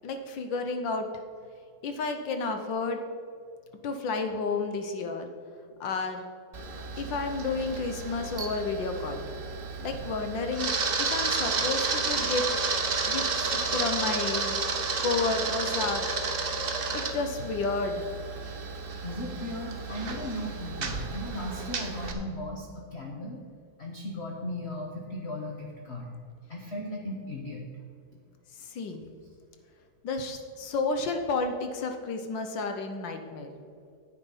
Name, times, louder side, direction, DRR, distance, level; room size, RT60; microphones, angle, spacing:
voice 1, 0.0-1.1 1.8-3.0 3.8-5.3 5.8-6.3 7.0-9.2 9.8-10.7 11.0-12.4 13.1-14.6 15.0-16.1 16.9-18.1 28.6-29.0 30.0-33.5, left 4 dB, 70° left, 6 dB, 1.6 m, -31 dB
Camera, 6.5-22.1, right 4 dB, 40° right, 0.9 m, -31 dB
voice 2, 19.0-23.4 23.8-26.1 26.5-27.6, left 1 dB, 40° left, 0 dB, 1.0 m, -37 dB
10.5 x 8.4 x 5.5 m, 2.2 s
omnidirectional pair, 2.1 m